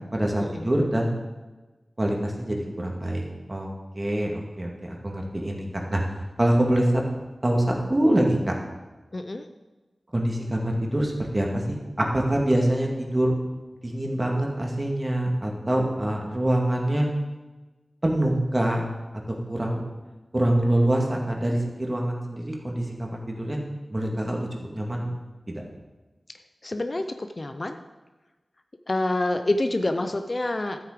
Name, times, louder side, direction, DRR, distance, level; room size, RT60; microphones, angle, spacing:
voice 1, 0.1-1.1 2.0-3.2 3.5-3.7 3.9-6.0 6.4-7.0 7.4-8.5 10.1-13.3 13.8-17.1 18.0-18.9 19.5-19.8 20.3-23.6 23.9-25.1 25.5-25.6, right 1 dB, 30° right, 0 dB, 2.2 m, -25 dB
voice 2, 9.1-9.4 26.6-27.8 28.9-30.8, left 2 dB, 40° left, 7 dB, 0.6 m, -27 dB
13.0 x 8.0 x 5.1 m, 1.2 s
wide cardioid pair, 90°, 0 cm